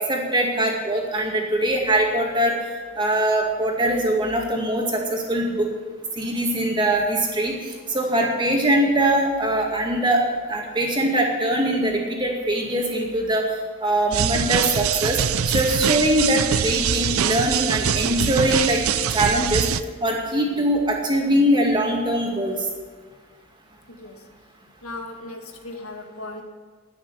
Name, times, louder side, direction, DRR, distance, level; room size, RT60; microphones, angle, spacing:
voice 1, 0.0-2.6 3.0-5.7 6.2-10.2 10.5-13.4 13.8-15.2 15.5-18.8 19.1-19.7 20.0-22.7, right 1 dB, 20° right, 0 dB, 2.1 m, -22 dB
sound 1, 14.1-19.8, right 8 dB, 80° right, 0.5 m, -23 dB
voice 2, 23.9-24.3 24.8-26.4, left 2 dB, 85° left, 4 dB, 1.7 m, -37 dB
10.5 x 9.5 x 9.7 m, 1.5 s
head